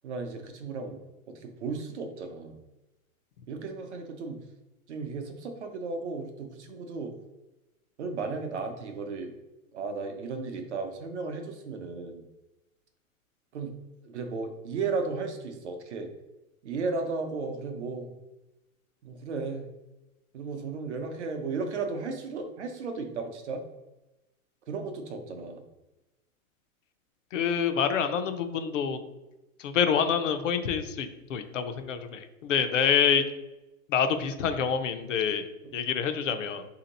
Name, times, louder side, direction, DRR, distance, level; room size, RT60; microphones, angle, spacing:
voice 1, 0.0-1.0 1.3-2.5 3.5-4.4 4.9-7.1 8.0-9.3 9.7-12.2 13.5-13.8 14.0-16.1 16.6-18.1 19.0-19.7 20.3-23.6 24.7-25.6 35.6-35.7, right 4 dB, 55° right, 5 dB, 0.7 m, -34 dB
voice 2, 27.3-29.0 29.6-33.2 33.9-35.5 35.7-36.7, left 7 dB, 60° left, 8 dB, 0.6 m, -27 dB
3.6 x 2.8 x 4.0 m, 1.0 s
hypercardioid pair, 175°, 43 cm